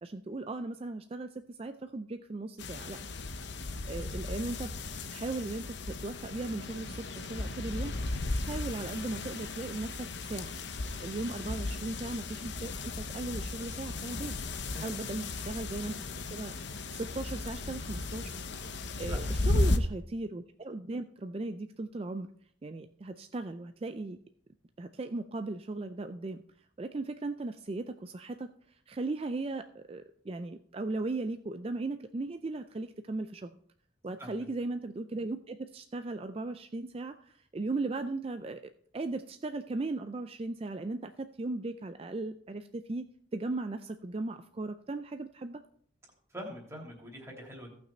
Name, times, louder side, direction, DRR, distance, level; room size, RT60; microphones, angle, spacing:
voice 1, 0.0-3.0 3.8-4.8 5.1-10.5 11.0-14.3 14.8-16.5 16.9-18.3 19.0-22.3 22.6-24.2 24.8-26.4 26.8-28.5 28.9-33.5 34.0-43.0 43.3-45.6, right 2 dB, 30° right, 8 dB, 0.4 m, -37 dB
sound 1, 2.6-19.8, left 2 dB, 65° left, 0.8 m, -35 dB
voice 2, 11.2-11.8 14.6-15.0 19.1-19.8 34.2-34.5 46.3-47.7, equal, 15° right, -1 dB, 2.8 m, -46 dB
16.5 x 6.0 x 4.3 m, 0.62 s
head